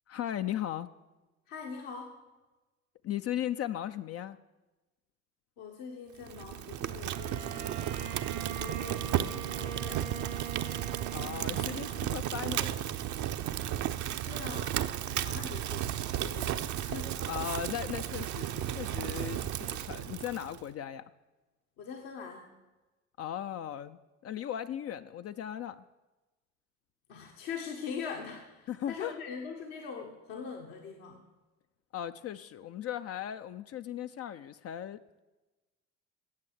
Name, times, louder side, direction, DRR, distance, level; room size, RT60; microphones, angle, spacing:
voice 1, 0.1-0.9 3.0-4.4 11.1-12.9 17.2-21.0 23.2-25.9 28.7-29.2 31.9-35.2, left 10 dB, 40° left, 10 dB, 0.5 m, -37 dB
voice 2, 1.5-2.2 5.6-7.8 8.5-10.5 14.2-14.8 15.2-15.9 16.2-17.1 21.8-22.5 27.1-31.2, left 6 dB, 65° left, 1 dB, 1.4 m, -42 dB
Fire, 6.2-20.6, right 11 dB, 50° right, 0.7 m, -34 dB
Bowed string instrument, 7.0-12.8, right 8 dB, 80° right, 1.4 m, -42 dB
9.5 x 7.7 x 7.4 m, 1.1 s
hypercardioid pair, 60°, 37 cm